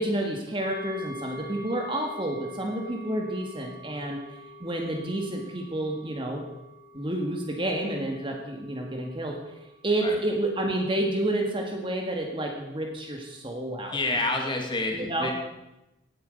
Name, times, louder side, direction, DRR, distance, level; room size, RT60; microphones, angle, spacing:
voice 1, 0.0-4.2 4.6-6.4 6.9-9.4 9.8-14.2 14.9-15.3, right 1 dB, 25° right, 2 dB, 1.8 m, -29 dB
sound 1, 0.6-12.3 12.7-12.8, equal, 45° left, 2.0 m, -46 dB
voice 2, 13.9-15.3, left 2 dB, 25° left, 2 dB, 2.5 m, -28 dB
17.5 x 9.4 x 6.5 m, 0.91 s
head